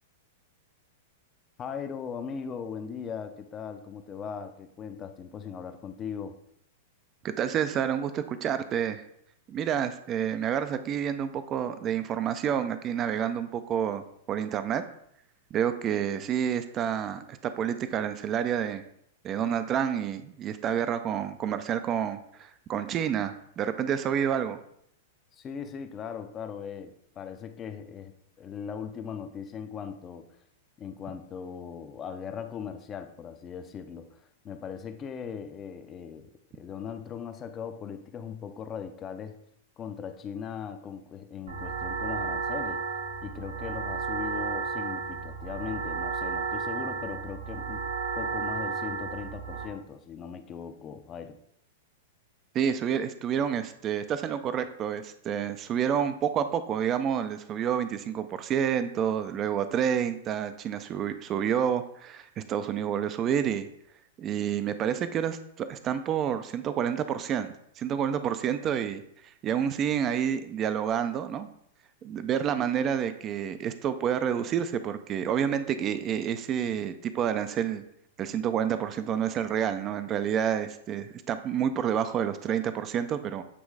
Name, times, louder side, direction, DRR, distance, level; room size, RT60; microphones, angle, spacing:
voice 1, 1.6-6.4 25.3-30.3 30.8-39.4 39.8-42.8 43.2-47.8 48.2-51.4, left 7 dB, 25° left, 9 dB, 0.6 m, -39 dB
voice 2, 7.2-9.0 9.5-14.8 15.5-18.8 19.2-24.6 52.5-63.7 64.2-71.5 72.0-77.8 78.2-83.4, right 8 dB, 30° right, 11 dB, 0.5 m, -29 dB
sound 1, 41.5-49.6, right 5 dB, 85° right, 1.7 m, -33 dB
8.4 x 3.1 x 4.8 m, 0.72 s
hypercardioid pair, 130°, 0 cm